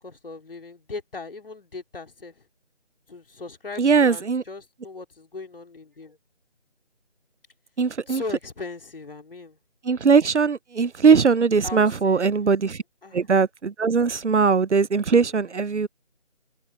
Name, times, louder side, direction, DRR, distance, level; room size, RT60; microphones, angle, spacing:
voice 1, 0.0-2.4 3.1-6.2 8.1-9.6 11.6-12.5 13.0-13.3 15.2-15.6, left 3 dB, 55° left, 3.1 m, -39 dB
voice 2, 3.8-4.4 7.8-8.2 9.8-12.8 13.1-15.9, right 5 dB, 85° right, 0.8 m, -20 dB
figure-of-eight pair, 170°, 35 cm